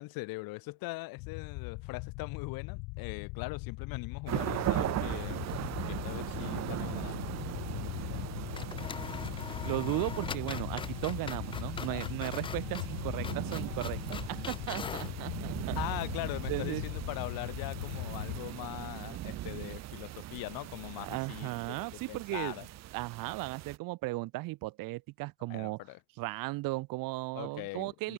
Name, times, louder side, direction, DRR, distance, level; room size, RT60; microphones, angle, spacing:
voice 1, 0.0-7.2 11.9-12.0 12.7-12.8 15.8-22.7 25.5-26.0 27.3-28.1, left 23 dB, 70° left, 2.3 m, -41 dB
sound 1, 1.2-18.4, left 29 dB, 90° left, 1.1 m, -40 dB
sound 2, 4.3-23.8, right 14 dB, 45° right, 2.3 m, -39 dB
sound 3, 5.4-6.3 6.5-6.6 8.1-8.3 8.5-15.2, left 6 dB, 15° left, 0.4 m, -43 dB
voice 2, 9.6-15.8 16.5-16.8 21.0-22.5 22.9-25.8 26.2-28.1, right 21 dB, 65° right, 2.5 m, -36 dB
cardioid pair, 175°, 36 cm